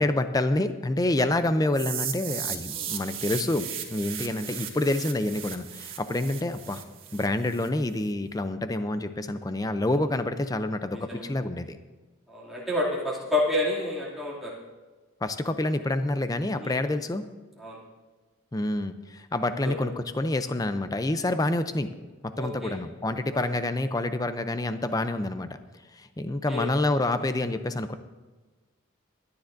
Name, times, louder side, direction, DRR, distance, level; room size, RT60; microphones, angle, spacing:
voice 1, 0.0-6.8 7.1-11.8 15.2-17.3 18.5-21.9 22.2-25.6 25.9-28.0, left 2 dB, 20° left, 10 dB, 0.5 m, -27 dB
sound 1, 1.7-7.7, right 9 dB, 85° right, 1.5 m, -36 dB
voice 2, 10.9-11.3 12.3-14.5 16.6-16.8 17.6-17.8 19.6-19.8 22.4-22.7 23.3-23.5 26.5-26.7, left 2 dB, ahead, -6 dB, 2.5 m, -29 dB
24.0 x 9.8 x 2.6 m, 1.3 s
head